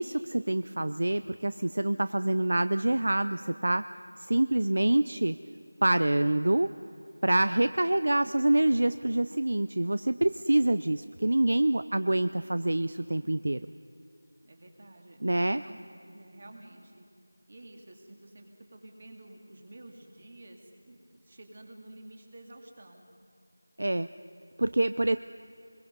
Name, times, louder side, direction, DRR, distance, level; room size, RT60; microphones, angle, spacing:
voice 1, 0.0-3.8 4.2-5.4 5.8-6.7 7.2-13.6 15.2-15.6 23.8-24.1 24.6-25.2, right 1 dB, 65° right, 12 dB, 0.5 m, -26 dB
voice 2, 14.4-17.0 17.5-18.5 18.7-23.0, right 1 dB, 40° right, 3 dB, 2.5 m, -50 dB
25.0 x 22.0 x 5.4 m, 2.6 s
figure-of-eight pair, 175°, 0 cm